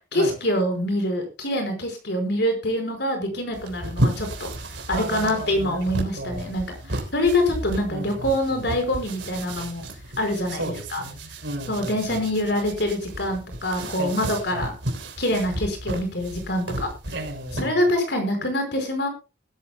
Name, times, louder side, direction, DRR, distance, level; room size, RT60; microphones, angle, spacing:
voice 1, 0.1-4.5 4.9-9.8 10.2-10.6 10.9-11.0 11.7-14.7 15.2-16.9 17.5-19.1, left 1 dB, 65° left, 5.1 m, -25 dB
sound 1, 3.5-17.7, right 1 dB, 85° right, 3.8 m, -33 dB
voice 2, 4.9-6.5 7.9-8.8 10.5-12.2 13.9-14.7 17.1-17.8, right 1 dB, 70° right, 5.0 m, -35 dB
20.0 x 13.0 x 2.3 m
head